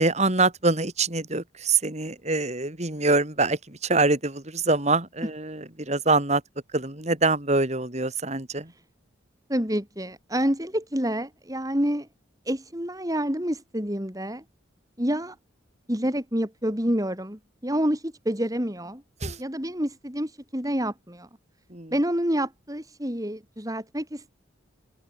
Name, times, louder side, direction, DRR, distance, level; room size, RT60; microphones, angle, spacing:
voice 1, 0.0-6.4 6.7-8.7 19.2-19.4 21.7-21.9, right 3 dB, 35° right, 3.1 m, -24 dB
voice 2, 9.5-12.1 12.5-14.4 15.0-15.4 15.9-19.0 19.4-21.3 21.9-24.3, equal, 20° right, 4.7 m, -28 dB
head